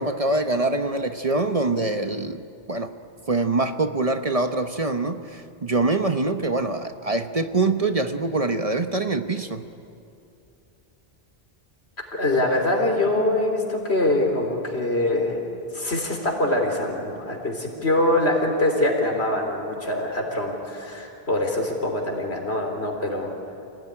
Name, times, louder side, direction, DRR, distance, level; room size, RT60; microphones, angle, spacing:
voice 1, 0.0-2.4 2.7-2.9 3.3-9.6, right 3 dB, 35° right, 8 dB, 1.0 m, -24 dB
voice 2, 12.1-15.4 15.7-23.3, left 1 dB, 80° left, 2 dB, 4.0 m, -24 dB
28.0 x 18.0 x 9.9 m, 2.7 s
omnidirectional pair, 1.1 m